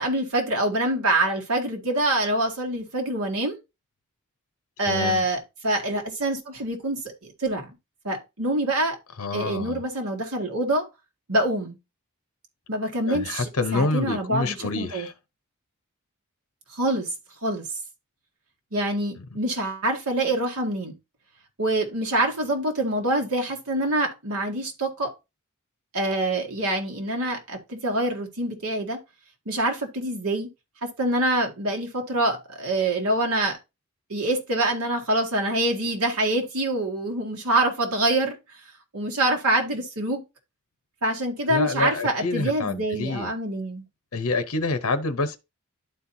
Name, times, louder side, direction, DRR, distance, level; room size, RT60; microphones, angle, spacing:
voice 1, 0.0-3.6 4.8-7.7 8.0-9.0 9.3-10.8 11.3-11.8 12.7-15.1 16.7-17.1 17.4-17.7 18.7-20.9 21.6-25.1 25.9-29.0 29.5-30.5 30.8-33.6 34.1-38.3 38.9-40.2 41.0-43.8, right 1 dB, 80° right, 1.9 m, -25 dB
voice 2, 4.8-5.2 9.2-9.8 13.1-15.1 19.2-19.3 41.5-43.3 44.1-45.4, left 3 dB, 65° left, 0.8 m, -27 dB
12.0 x 4.4 x 2.7 m
head